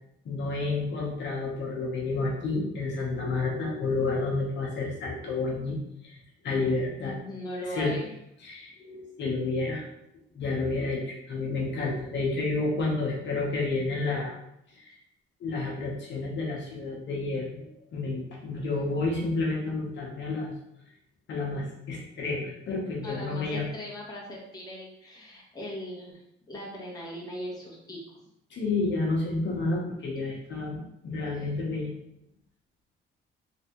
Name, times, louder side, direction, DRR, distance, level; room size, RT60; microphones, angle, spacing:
voice 1, 0.2-5.8 6.0-6.2 6.4-7.1 7.7-7.9 8.4-9.8 10.3-14.4 14.8-14.9 15.4-17.7 17.9-20.5 21.3-23.7 28.5-31.9, left 3 dB, 65° left, -3 dB, 1.0 m, -30 dB
voice 2, 7.0-8.1 23.0-26.2 26.5-28.3 31.3-31.5, left 1 dB, 20° left, -4 dB, 1.2 m, -39 dB
3.3 x 3.2 x 3.0 m, 0.80 s
cardioid pair, 90°, 20 cm